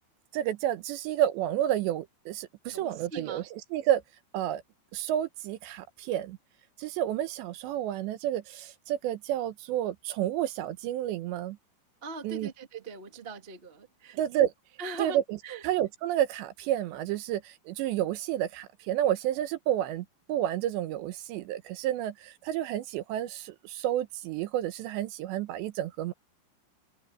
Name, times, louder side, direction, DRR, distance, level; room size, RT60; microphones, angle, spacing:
voice 1, 0.3-4.0 4.3-4.6 4.9-6.4 6.8-11.6 12.2-12.5 14.1-14.5 15.0-15.4 15.6-26.1, right 12 dB, 75° right, 3.0 m, -30 dB
voice 2, 2.7-3.4 12.0-14.2 14.8-15.2 15.4-15.6, right 3 dB, 40° right, 0.7 m, -40 dB
omnidirectional pair, 5.5 m